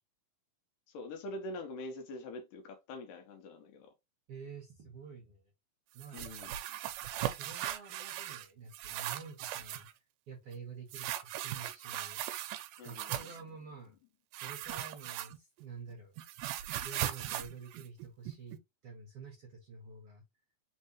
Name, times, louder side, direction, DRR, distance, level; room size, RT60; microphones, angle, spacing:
voice 1, 0.9-3.9 6.1-6.8 12.8-13.3, left 2 dB, 75° left, 2.3 m, -44 dB
voice 2, 4.3-5.4 5.9-6.6 7.3-9.9 10.3-12.2 12.8-13.9 14.4-16.2 16.8-18.6 18.8-20.2, right 5 dB, 55° right, 1.7 m, -49 dB
sound 1, 6.0-8.5 8.7-9.9 10.9-13.4 14.3-15.6 15.9-18.6, right 13 dB, 85° right, 2.3 m, -39 dB
5.5 x 3.3 x 2.9 m
omnidirectional pair, 4.2 m